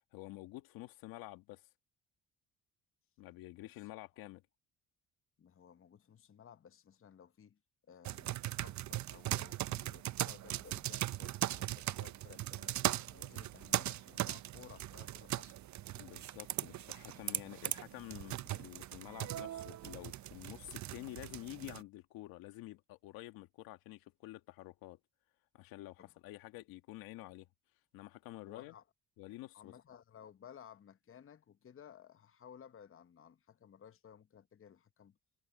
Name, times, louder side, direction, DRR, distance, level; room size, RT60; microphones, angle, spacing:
voice 1, 0.1-1.6 3.2-4.4 16.0-25.0 25.5-27.5 27.9-28.8 29.2-29.7, left 17 dB, 85° left, 1.8 m, -49 dB
voice 2, 5.4-7.6 7.9-12.8 13.1-15.6 26.0-26.1 28.5-28.8 29.5-35.2, left 8 dB, 40° left, 0.9 m, -57 dB
sound 1, 8.1-21.8, right 13 dB, 55° right, 0.6 m, -39 dB
supercardioid pair, 70°, 35 cm